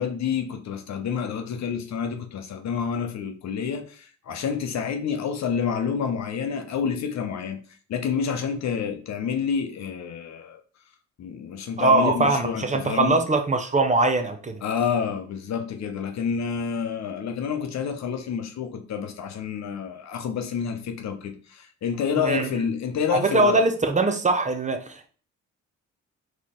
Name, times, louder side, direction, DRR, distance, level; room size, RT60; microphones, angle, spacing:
voice 1, 0.0-7.6 7.9-10.6 11.2-13.2 14.6-23.6, left 7 dB, 65° left, 0.8 m, -28 dB
voice 2, 11.8-14.6 22.2-22.5 23.1-25.1, right 2 dB, 25° right, 0.6 m, -22 dB
4.1 x 3.1 x 3.7 m
cardioid pair, 90°, 30 cm